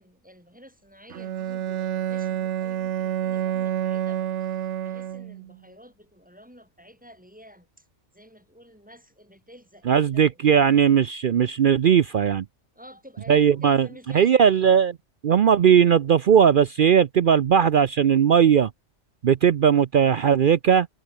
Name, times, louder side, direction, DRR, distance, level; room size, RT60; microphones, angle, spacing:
voice 1, 0.0-7.9 8.1-10.4 12.7-14.6, equal, 5° right, 5.5 m, -50 dB
Bowed string instrument, 1.1-5.5, right 11 dB, 80° right, 1.1 m, -28 dB
voice 2, 9.9-12.4 13.3-13.9 14.1-14.9 15.2-18.7 19.2-20.9, right 8 dB, 55° right, 0.7 m, -18 dB
omnidirectional pair, 1.2 m